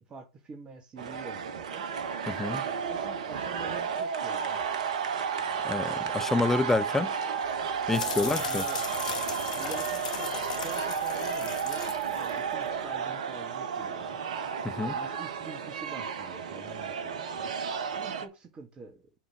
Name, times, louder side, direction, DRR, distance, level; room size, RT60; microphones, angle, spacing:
voice 1, 0.0-1.9 2.6-4.6 5.4-6.3 8.0-8.8 9.5-11.8 12.1-14.2 14.7-17.6 18.0-19.1, right 4 dB, 25° right, 2.0 m, -46 dB
sound 1, 1.0-18.2, right 7 dB, 65° right, 1.2 m, -33 dB
voice 2, 2.3-2.6 5.6-7.1 7.9-8.6 14.6-15.0, left 3 dB, 10° left, 0.6 m, -28 dB
sound 2, 7.4-13.0, left 6 dB, 70° left, 1.7 m, -37 dB
7.5 x 3.8 x 6.5 m
hypercardioid pair, 100°, 4 cm